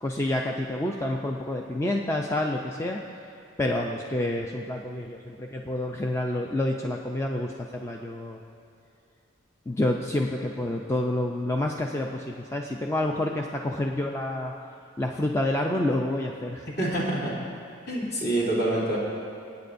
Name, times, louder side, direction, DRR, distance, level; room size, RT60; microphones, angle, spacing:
voice 1, 0.0-3.0 3.6-8.4 9.7-14.5 15.0-16.8, left 1 dB, 15° left, 1 dB, 0.4 m, -28 dB
voice 2, 16.8-17.3 17.9-19.0, right 1 dB, 55° left, -6 dB, 2.9 m, -26 dB
26.0 x 9.2 x 2.6 m, 2.4 s
head